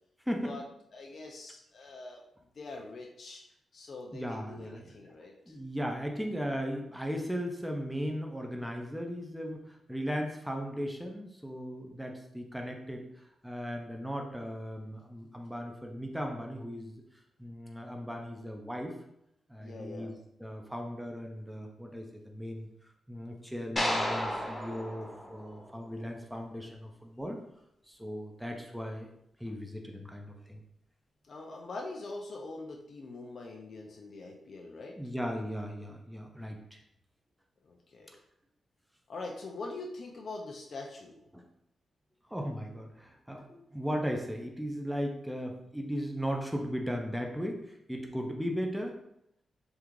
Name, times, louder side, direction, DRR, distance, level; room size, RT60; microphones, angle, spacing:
voice 1, 0.3-0.6 4.1-4.9 5.5-17.0 17.4-18.9 19.5-22.7 23.1-27.4 27.9-29.1 29.4-30.6 35.0-36.8 38.1-38.2 41.3-41.4 42.3-49.0, equal, 5° right, 2 dB, 0.4 m, -37 dB
voice 2, 0.9-2.2 2.5-3.4 3.7-5.6 19.6-20.1 31.3-35.0 37.6-38.1 39.1-41.3, left 3 dB, 55° left, 0 dB, 0.4 m, -43 dB
sound 1, 23.8-26.1, left 1 dB, 25° left, 0.7 m, -33 dB
3.5 x 2.4 x 3.0 m, 0.77 s
cardioid pair, 100°, 0 cm